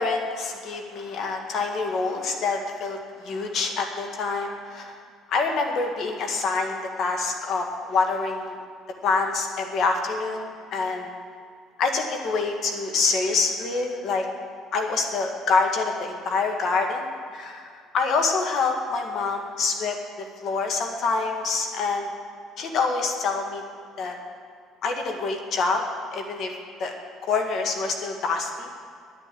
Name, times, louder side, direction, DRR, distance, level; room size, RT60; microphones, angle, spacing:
voice 1, 0.0-5.0 5.3-8.6 9.0-11.1 11.8-14.3 14.7-22.1 22.6-23.6 24.0-24.2 24.8-25.8 26.1-26.5 26.8-26.9 27.2-28.7, left 4 dB, 60° left, 3 dB, 1.8 m, -26 dB
9.8 x 9.8 x 7.6 m, 2.2 s
supercardioid pair, 70°, 0 cm